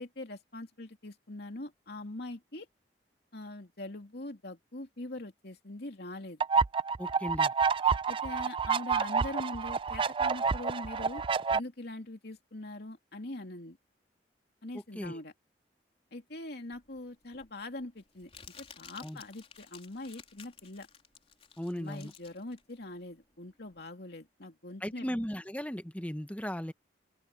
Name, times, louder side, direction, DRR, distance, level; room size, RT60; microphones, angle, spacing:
voice 1, 0.0-2.7 3.3-6.4 8.1-11.2 11.5-13.8 14.6-15.3 16.1-18.3 18.6-20.9 21.8-25.1, left 2 dB, 65° left, 2.9 m, -42 dB
sound 1, 6.4-11.6, right 5 dB, 30° right, 0.4 m, -29 dB
voice 2, 7.0-7.5 14.9-15.2 19.0-19.2 21.6-22.1 24.8-26.7, equal, 10° left, 1.2 m, -36 dB
Crumpling crinkling, 16.7-23.8, left 6 dB, 35° left, 3.5 m, -54 dB
open air
head